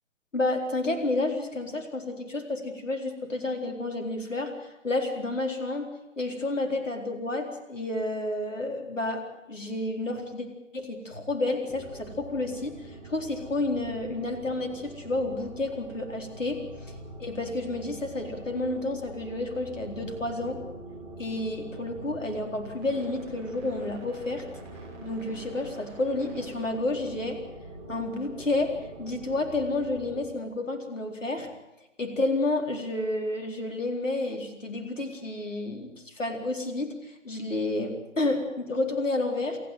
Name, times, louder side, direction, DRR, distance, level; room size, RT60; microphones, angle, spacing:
voice 1, 0.3-5.9 6.2-10.5 10.7-16.6 17.2-20.6 21.2-24.4 25.0-27.4 27.9-28.7 29.0-31.5 32.0-39.6, left 2 dB, 75° left, 4 dB, 4.2 m, -30 dB
sound 1, 11.7-30.3, right 2 dB, 20° right, 6.2 m, -44 dB
27.5 x 10.0 x 9.3 m, 0.93 s
figure-of-eight pair, 140°, 38 cm